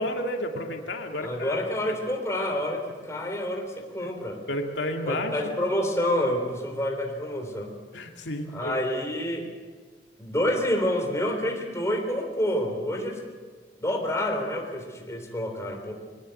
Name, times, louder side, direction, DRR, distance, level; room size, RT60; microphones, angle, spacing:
voice 1, 0.0-1.6 3.1-3.2 4.5-5.6 7.9-8.8, left 1 dB, 90° left, 3 dB, 2.2 m, -31 dB
voice 2, 1.2-4.4 5.1-7.7 8.5-9.5 10.2-13.2 13.8-15.9, left 1 dB, 15° left, 2 dB, 3.5 m, -28 dB
22.5 x 19.0 x 7.8 m, 1.4 s
head